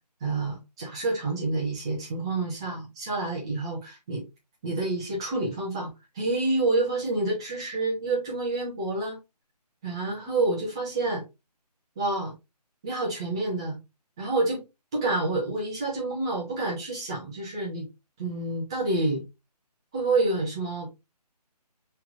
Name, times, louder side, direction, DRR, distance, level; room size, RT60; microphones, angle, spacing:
voice 1, 0.2-4.2 4.6-9.2 9.8-11.2 12.0-12.3 12.8-13.8 14.2-14.6 14.9-17.9 18.2-19.3 19.9-21.0, right 2 dB, 10° right, 0.6 m, -28 dB
5.6 x 3.2 x 2.4 m
figure-of-eight pair, 155°, 21 cm